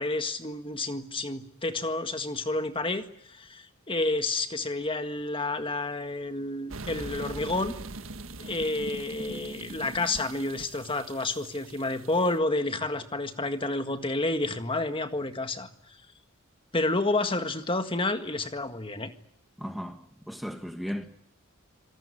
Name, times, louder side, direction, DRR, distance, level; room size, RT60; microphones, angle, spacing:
voice 1, 0.0-7.7 8.4-15.7 16.7-19.1, left 2 dB, 25° left, 1.8 m, -30 dB
sound 1, 6.7-12.3, right 2 dB, 75° right, 1.7 m, -42 dB
voice 2, 19.6-20.0 20.3-21.2, equal, ahead, 1.5 m, -35 dB
26.0 x 18.5 x 9.9 m
head